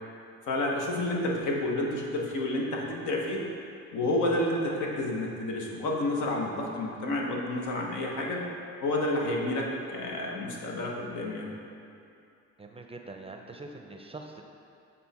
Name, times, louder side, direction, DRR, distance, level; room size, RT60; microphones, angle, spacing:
voice 1, 0.5-3.4 3.9-8.4 8.8-11.5, left 1 dB, 75° left, -1 dB, 1.2 m, -30 dB
voice 2, 12.6-14.4, right 2 dB, 20° right, 3 dB, 0.5 m, -43 dB
7.9 x 4.1 x 4.2 m, 2.6 s
cardioid pair, 90°, 30 cm